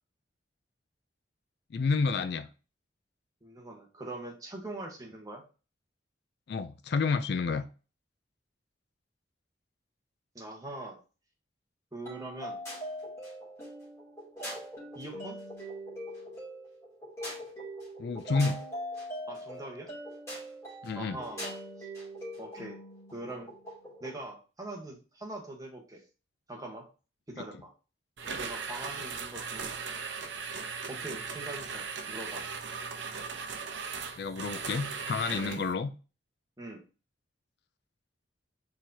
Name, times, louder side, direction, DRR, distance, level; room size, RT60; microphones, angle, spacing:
voice 1, 1.7-2.5 6.5-7.7 18.0-18.6 20.8-21.2 27.4-27.5 34.2-35.9, left 4 dB, 60° left, 11 dB, 0.4 m, -30 dB
voice 2, 3.4-5.4 10.3-11.0 11.9-12.6 14.9-15.4 19.3-19.9 20.9-21.4 21.8-21.9 22.4-22.8 23.1-23.5 24.0-26.0 26.5-26.9 27.3-27.7 28.4-29.8 30.9-32.5 35.4-35.6 36.6-36.8, right 2 dB, 20° right, 0 dB, 1.2 m, -42 dB
sound 1, 12.1-24.2, equal, 15° left, 2.6 m, -42 dB
sound 2, 28.2-35.7, right 5 dB, 75° right, 0.7 m, -38 dB
4.6 x 3.8 x 2.8 m, 0.34 s
head